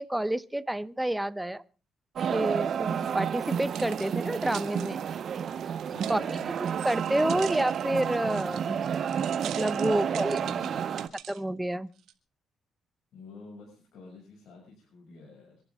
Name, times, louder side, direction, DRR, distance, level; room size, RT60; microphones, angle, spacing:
voice 1, 0.0-1.6 2.3-5.0 6.1-8.8 9.4-10.4 11.3-11.9, right 1 dB, 5° right, 0.7 m, -29 dB
sound 1, 2.2-11.1, right 8 dB, 60° right, 0.8 m, -31 dB
sound 2, 3.4-11.4 12.0-12.1, right 11 dB, 80° right, 1.6 m, -45 dB
voice 2, 5.9-6.6 7.3-7.4 9.9-11.1 13.1-15.6, left 3 dB, 70° left, 6.8 m, -48 dB
25.5 x 11.5 x 3.7 m
cardioid pair, 90°, 0 cm